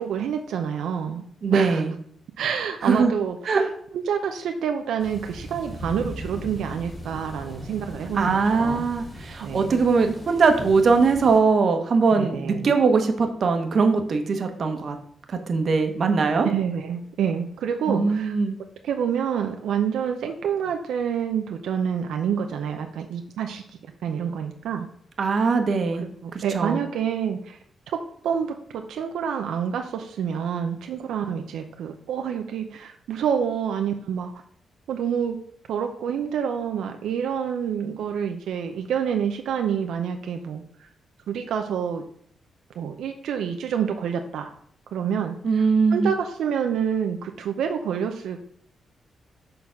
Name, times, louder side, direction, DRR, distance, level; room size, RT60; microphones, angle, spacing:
voice 1, 0.0-1.2 1.5-1.8 2.4-8.8 9.4-9.8 12.1-12.7 16.4-18.4 18.8-23.6 24.0-24.9 26.0-27.6 27.9-28.0 28.2-34.3 34.9-35.4 35.7-40.6 41.3-42.0 42.8-44.5 44.9-45.7 45.9-48.5, right 8 dB, 90° right, 5 dB, 0.6 m, -27 dB
voice 2, 1.4-1.9 2.8-3.1 3.5-3.7 8.1-15.0 15.3-16.5 17.9-18.6 25.2-26.0 26.3-26.8 45.4-46.1, right 4 dB, 50° right, 6 dB, 1.1 m, -21 dB
sound 1, 5.0-11.4, equal, 20° left, 2.8 m, -39 dB
6.6 x 3.9 x 5.8 m, 0.63 s
cardioid pair, 105°, 0 cm